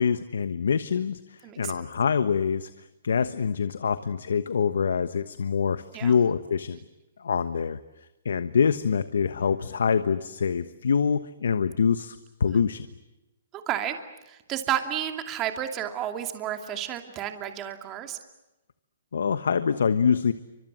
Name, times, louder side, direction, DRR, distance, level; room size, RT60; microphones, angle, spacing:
voice 1, 0.0-2.7 3.0-6.8 7.2-7.8 8.2-12.9 19.1-20.3, left 6 dB, 85° left, 12 dB, 1.2 m, -25 dB
voice 2, 1.4-1.9 5.9-6.2 12.5-12.6 13.7-14.0 14.3-18.2, right 11 dB, 20° right, 7 dB, 2.6 m, -31 dB
29.0 x 25.5 x 7.5 m, 0.99 s
hypercardioid pair, 160°, 0 cm